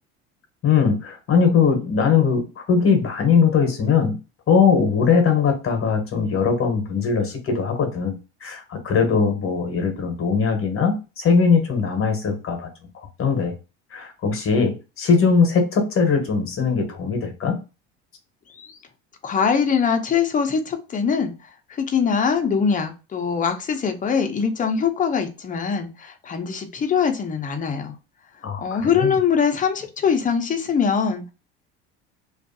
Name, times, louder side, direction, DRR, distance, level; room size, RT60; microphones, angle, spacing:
voice 1, 0.6-4.2 4.5-8.1 8.4-12.7 12.9-13.5 13.9-17.6 28.4-29.2, left 5 dB, 40° left, 4 dB, 0.9 m, -20 dB
voice 2, 19.2-21.3 21.8-27.9 28.6-31.3, left 6 dB, 25° left, 5 dB, 0.6 m, -22 dB
2.5 x 2.3 x 2.5 m, 0.30 s
supercardioid pair, 85°, 34 cm